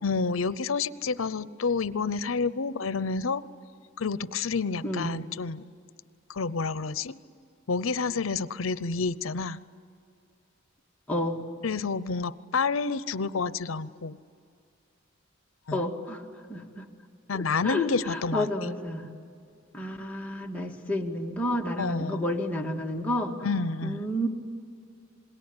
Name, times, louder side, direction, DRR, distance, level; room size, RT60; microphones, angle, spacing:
voice 1, 0.0-3.4 4.0-5.7 6.3-7.1 7.7-9.6 11.6-14.2 15.7-15.8 17.3-18.5 21.8-22.3 23.4-24.0, left 4 dB, 80° left, 16 dB, 0.7 m, -29 dB
voice 2, 11.1-11.4 15.7-16.2 16.5-16.8 17.3-19.0 19.7-23.4 23.8-24.3, left 1 dB, 5° left, -1 dB, 2.0 m, -30 dB
26.5 x 21.0 x 9.9 m, 2.3 s
head